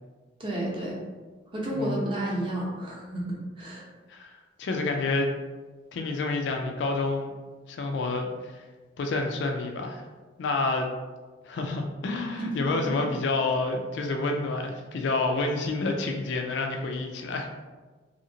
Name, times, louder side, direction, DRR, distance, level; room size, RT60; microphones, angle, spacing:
voice 1, 0.4-1.0 1.5-3.8 12.4-12.5, right 1 dB, 25° right, -4 dB, 0.7 m, -31 dB
voice 2, 1.7-2.1 4.1-5.3 5.9-7.3 7.7-8.6 9.0-10.1 10.4-10.9 11.4-17.5, left 3 dB, 70° left, 3 dB, 0.3 m, -29 dB
2.8 x 2.8 x 2.7 m, 1.3 s
head